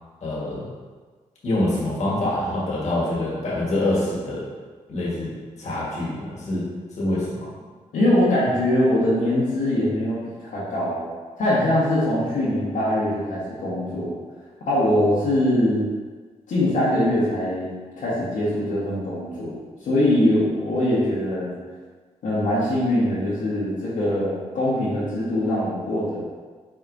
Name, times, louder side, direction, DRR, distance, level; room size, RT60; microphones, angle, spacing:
voice 1, 0.2-0.7 1.4-4.4 4.9-5.3 5.6-6.6 7.0-7.5, left 1 dB, 65° left, -6 dB, 1.4 m, -25 dB
voice 2, 7.9-11.0 11.4-14.1 14.6-15.8 16.5-19.6 19.8-21.5 22.2-26.2, left 1 dB, 85° left, -9 dB, 1.2 m, -22 dB
4.7 x 4.1 x 2.6 m, 1.4 s
cardioid pair, 65°, 13 cm